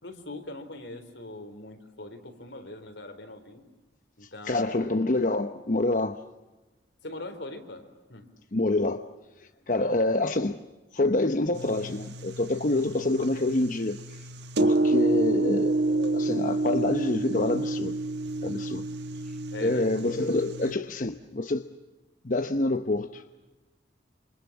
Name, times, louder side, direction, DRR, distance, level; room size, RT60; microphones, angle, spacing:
voice 1, 0.0-3.6 4.2-5.0 7.0-7.8 8.1-8.3 9.8-10.0 12.9-13.0 14.7-15.0 19.5-19.9, left 2 dB, 80° left, 3.9 m, -42 dB
voice 2, 4.5-6.2 8.5-9.0 9.4-10.6 10.9-14.2 14.6-18.0 18.4-18.8 19.6-21.7 22.2-23.2, left 2 dB, 45° left, 0.9 m, -27 dB
sound 1, 11.5-20.7, right 2 dB, 70° right, 1.4 m, -29 dB
28.0 x 27.5 x 7.3 m
head